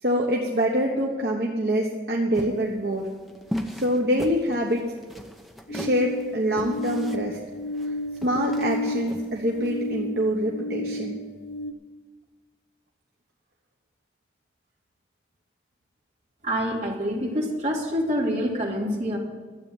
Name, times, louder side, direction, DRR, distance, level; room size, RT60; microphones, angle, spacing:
voice 1, 0.0-3.1 3.7-4.8 5.7-7.4 8.2-11.2, equal, 60° right, -1 dB, 1.3 m, -25 dB
sound 1, 2.3-9.8, equal, ahead, 0.8 m, -37 dB
sound 2, 5.7-11.7, left 1 dB, 80° left, 0.8 m, -32 dB
voice 2, 16.4-19.2, equal, 40° right, -4 dB, 2.9 m, -26 dB
12.5 x 8.5 x 7.9 m, 1.4 s
head